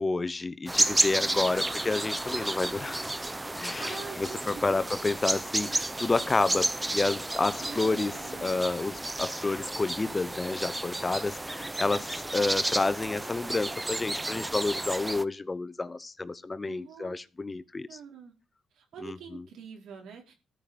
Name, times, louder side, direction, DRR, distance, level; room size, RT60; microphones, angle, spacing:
voice 1, 0.0-3.0 3.6-18.0 19.0-19.4, left 3 dB, 25° left, 0.9 m, -30 dB
sound 1, 0.7-15.2, right 2 dB, 15° right, 0.8 m, -32 dB
voice 2, 1.1-1.8 3.8-4.8 7.6-8.9 16.7-17.2 17.9-18.3 18.7-20.3, right 7 dB, 80° right, 4.6 m, -46 dB
14.0 x 5.8 x 7.5 m
supercardioid pair, 70°, 0 cm